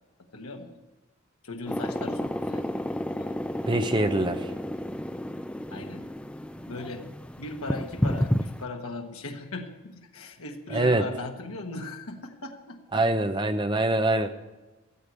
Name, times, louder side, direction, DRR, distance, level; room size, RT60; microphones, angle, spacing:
voice 1, 0.3-0.8 1.4-2.8 3.2-3.3 5.7-6.1 6.7-7.0 7.4-13.0, left 2 dB, 80° left, 3 dB, 1.4 m, -38 dB
sound 1, 1.7-8.6, equal, 5° left, 0.4 m, -31 dB
voice 2, 3.7-4.5 10.7-11.1 12.9-14.3, right 2 dB, 20° right, 8 dB, 0.8 m, -24 dB
14.0 x 8.0 x 8.5 m, 1.1 s
head